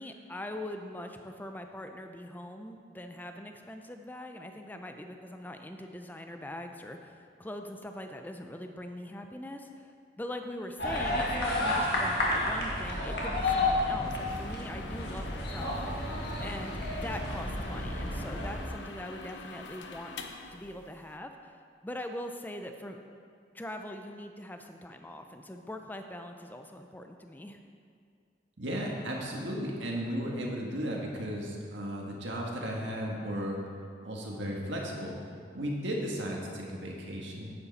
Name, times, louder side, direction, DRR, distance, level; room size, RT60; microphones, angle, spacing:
voice 1, 0.0-20.1 20.5-23.0 23.5-27.6, left 1 dB, 10° left, 5 dB, 0.5 m, -42 dB
sound 1, 10.8-18.6, left 2 dB, 60° left, 1.7 m, -31 dB
sound 2, 14.0-21.2, left 4 dB, 75° left, 0.7 m, -46 dB
voice 2, 28.6-33.6 34.0-35.2 35.5-37.5, equal, 80° right, -2 dB, 1.6 m, -35 dB
9.7 x 8.3 x 4.1 m, 2.2 s
head